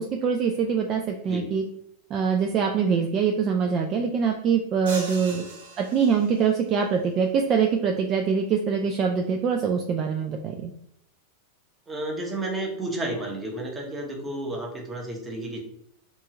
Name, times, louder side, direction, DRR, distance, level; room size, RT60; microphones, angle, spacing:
voice 1, 0.0-1.6 2.1-5.4 5.8-10.7, right 6 dB, 35° right, 2 dB, 0.3 m, -24 dB
sound 1, 4.9-6.7, right 2 dB, 80° right, 0.8 m, -39 dB
voice 2, 11.9-15.6, right 1 dB, 15° right, -1 dB, 0.8 m, -32 dB
2.8 x 2.3 x 2.8 m, 0.70 s
hypercardioid pair, 125°, 0 cm